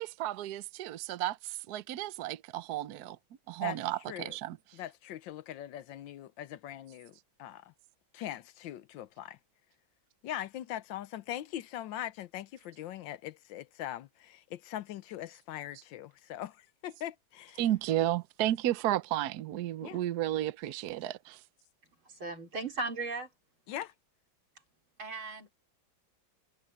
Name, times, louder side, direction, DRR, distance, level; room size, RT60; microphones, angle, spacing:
voice 1, 0.0-3.2 3.5-4.6 17.6-21.4, right 13 dB, 60° right, 1.1 m, -33 dB
voice 2, 4.7-7.7 8.1-9.4 10.2-17.6 19.8-20.0 23.7-23.9, left 12 dB, 75° left, 1.3 m, -41 dB
voice 3, 22.0-23.3 25.0-25.5, right 3 dB, 90° right, 5.0 m, -37 dB
omnidirectional pair, 2.2 m